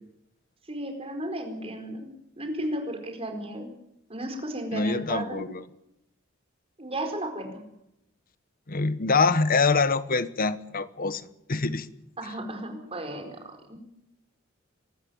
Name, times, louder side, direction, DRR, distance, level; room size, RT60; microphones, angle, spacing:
voice 1, 0.7-3.7 4.1-5.4 6.8-7.6 12.2-13.8, right 1 dB, 30° right, 4.7 m, -34 dB
voice 2, 4.7-5.6 8.7-11.2 11.5-11.9, left 4 dB, 45° left, 1.1 m, -25 dB
24.0 x 13.5 x 9.4 m
head